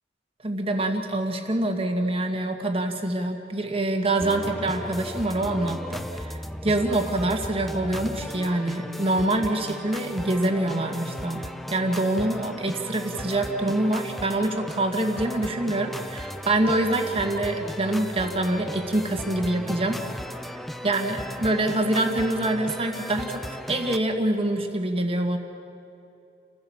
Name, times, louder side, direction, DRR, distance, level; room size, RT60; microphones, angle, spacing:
voice 1, 0.4-20.0 20.8-25.4, right 1 dB, 35° right, 4 dB, 1.9 m, -25 dB
sound 1, 4.2-24.0, equal, ahead, 0.6 m, -36 dB
29.5 x 16.0 x 7.2 m, 2.7 s
head